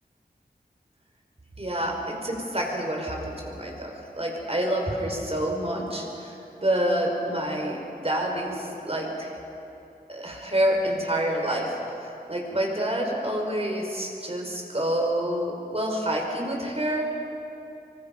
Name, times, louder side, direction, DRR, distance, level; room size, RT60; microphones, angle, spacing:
voice 1, 1.6-7.8 8.0-9.3 10.1-17.1, right 1 dB, 35° right, 0 dB, 5.0 m, -28 dB
26.5 x 24.0 x 5.2 m, 2.8 s
wide cardioid pair, 70°, 17 cm